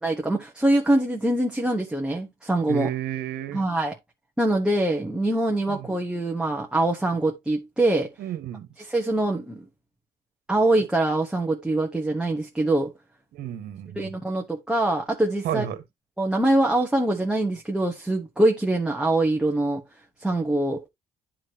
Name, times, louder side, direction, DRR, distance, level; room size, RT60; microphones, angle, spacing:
voice 1, 0.0-2.9 3.5-4.0 4.4-8.1 8.8-9.6 10.5-12.9 13.9-15.6 16.2-19.8 20.2-20.8, right 1 dB, 5° right, 1.3 m, -24 dB
voice 2, 2.7-3.6 5.7-5.9 8.2-8.7 13.3-14.1 15.4-15.8, right 11 dB, 70° right, 1.5 m, -31 dB
10.0 x 4.7 x 2.9 m
cardioid pair, 110°, 17 cm